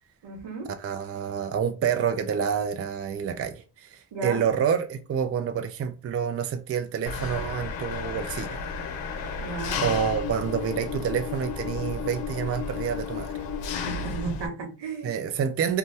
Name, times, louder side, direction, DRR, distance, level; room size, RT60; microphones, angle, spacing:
voice 1, 0.2-0.7 4.1-4.4 9.4-9.8 14.0-15.1, right 4 dB, 85° right, 1.1 m, -34 dB
voice 2, 0.8-8.6 9.8-13.3 15.0-15.8, right 7 dB, 35° right, 0.4 m, -28 dB
Engine, 7.1-14.5, left 5 dB, 90° left, 0.6 m, -33 dB
2.7 x 2.2 x 3.2 m
cardioid pair, 95°, 42 cm